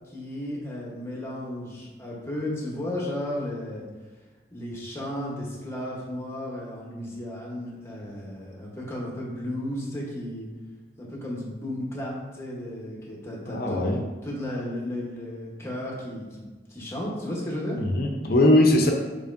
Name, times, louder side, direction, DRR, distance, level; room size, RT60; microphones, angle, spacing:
voice 1, 0.1-3.9 4.5-10.5 11.0-13.8 14.2-16.4 16.7-17.8, left 1 dB, 15° left, -4 dB, 1.0 m, -34 dB
voice 2, 13.5-14.0 17.8-18.9, left 1 dB, 60° left, 1 dB, 0.6 m, -20 dB
6.6 x 3.1 x 2.6 m, 1.3 s
head